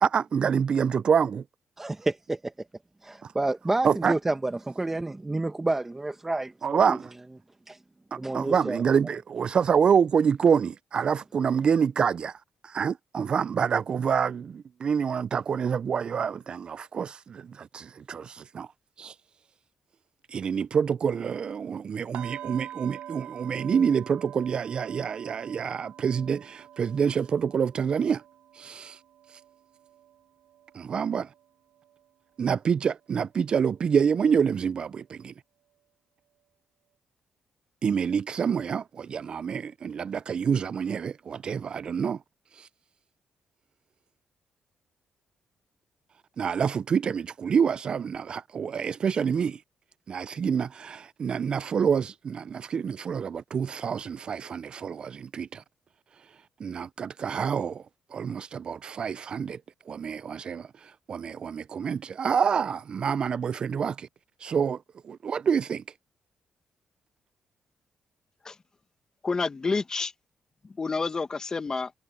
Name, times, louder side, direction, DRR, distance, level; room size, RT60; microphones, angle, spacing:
voice 1, 0.0-1.4 3.2-3.3 3.8-4.1 6.6-7.1 8.1-18.7 19.0-19.2 20.3-28.2 28.5-29.0 29.3-29.4 30.7-31.3 32.4-35.3 37.8-42.2 42.5-42.7 46.4-49.6 50.1-55.6 56.1-59.6 59.9-64.1 64.4-65.8, right 7 dB, 50° right, 0.3 m, -27 dB
voice 2, 1.8-2.5 3.0-6.8 7.7-7.8 8.2-8.8, right 2 dB, 20° right, 1.0 m, -29 dB
sound 1, 22.1-32.1 32.4-32.7 33.1-33.3, right 11 dB, 90° right, 2.0 m, -46 dB
voice 3, 69.2-70.1 70.6-71.9, left 4 dB, 35° left, 1.2 m, -29 dB
cardioid pair, 80°, 2 cm